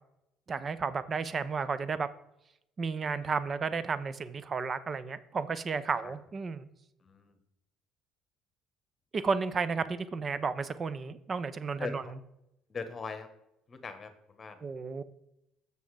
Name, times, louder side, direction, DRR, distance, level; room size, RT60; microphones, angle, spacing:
voice 1, 0.5-2.1 2.8-6.7 9.1-12.0 14.6-15.0, right 5 dB, 35° right, 15 dB, 0.6 m, -32 dB
voice 2, 7.0-7.4 11.8-12.1 12.7-13.3 13.7-14.6, left 5 dB, 30° left, 9 dB, 1.3 m, -40 dB
6.9 x 6.3 x 4.8 m, 0.83 s
cardioid pair, 100°, 0 cm